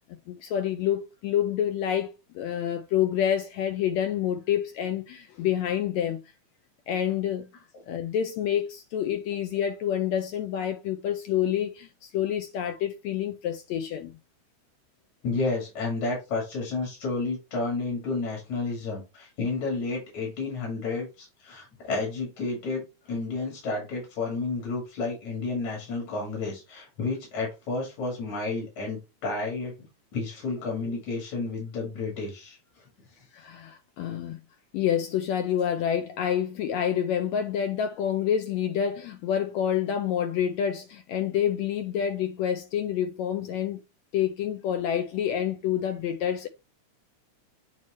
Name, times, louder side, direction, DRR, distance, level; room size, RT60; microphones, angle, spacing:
voice 1, 0.1-6.2 6.9-14.2 33.3-34.4 34.7-43.8 44.1-46.5, left 9 dB, 80° left, 1.7 m, -28 dB
voice 2, 15.2-29.7 30.1-32.6, left 3 dB, 65° left, 3.7 m, -31 dB
8.7 x 3.1 x 4.2 m
omnidirectional pair, 3.6 m